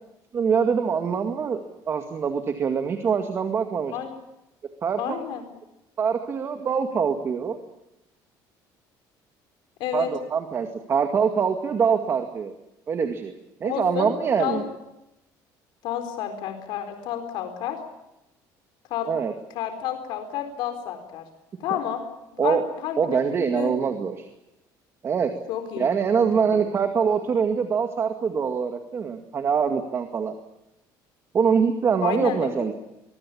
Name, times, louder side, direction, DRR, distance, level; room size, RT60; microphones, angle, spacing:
voice 1, 0.3-1.6 1.9-3.9 4.8-5.2 6.0-7.6 9.9-12.5 12.9-13.3 13.6-14.6 19.1-19.3 22.4-22.6 23.0-24.3 25.0-25.3 25.8-30.4 31.3-32.7, right 6 dB, 35° right, 6 dB, 2.1 m, -24 dB
voice 2, 5.0-5.4 9.8-10.1 13.6-14.1 14.4-14.6 15.8-17.8 18.9-19.1 19.5-21.2 21.6-22.1 22.3-23.8 25.5-26.6 32.0-32.5, left 10 dB, 75° left, 6 dB, 4.1 m, -30 dB
23.5 x 22.5 x 8.6 m, 0.91 s
cardioid pair, 150°, 8 cm